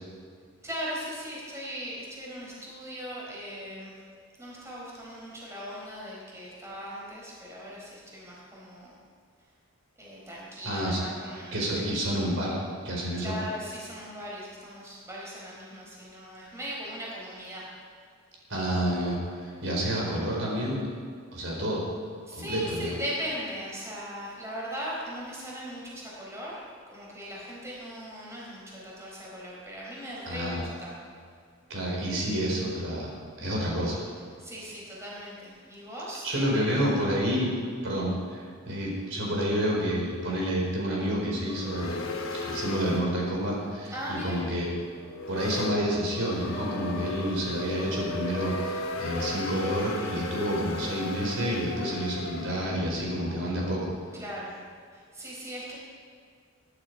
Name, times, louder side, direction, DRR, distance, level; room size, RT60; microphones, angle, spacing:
voice 1, 0.6-4.0 4.4-8.9 10.0-11.6 13.2-17.7 22.3-26.6 26.9-31.0 34.4-36.7 43.9-44.4 49.0-49.1 54.1-54.6 54.9-55.8, equal, 15° right, -5 dB, 4.5 m, -39 dB
voice 2, 10.6-11.0 11.5-12.6 12.8-13.3 18.5-20.8 21.3-21.8 22.3-23.0 30.2-30.6 31.7-34.0 36.2-37.5 37.8-42.1 42.4-44.7 45.3-53.9, equal, 70° right, -3 dB, 4.5 m, -29 dB
sound 1, 41.3-53.4, left 2 dB, 85° left, 2.2 m, -37 dB
22.0 x 11.5 x 4.8 m, 2.2 s
head